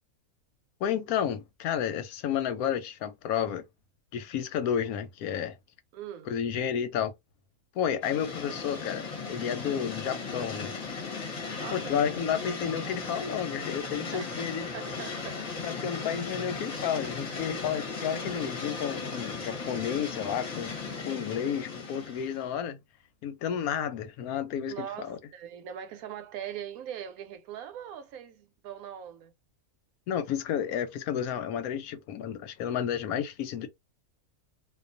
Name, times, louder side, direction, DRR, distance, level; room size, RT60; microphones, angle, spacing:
voice 1, 0.8-3.6 4.1-5.6 6.3-7.1 7.7-10.7 11.7-14.7 15.6-20.8 21.1-22.8 23.2-25.2 30.1-33.7, left 8 dB, 90° left, 1.1 m, -31 dB
voice 2, 5.9-6.3 11.6-12.0 12.8-13.1 14.1-14.4 14.7-15.5 24.7-29.3, right 9 dB, 80° right, 1.0 m, -41 dB
sound 1, 8.0-22.5, left 4 dB, 35° left, 0.7 m, -37 dB
2.4 x 2.3 x 2.5 m
omnidirectional pair, 1.5 m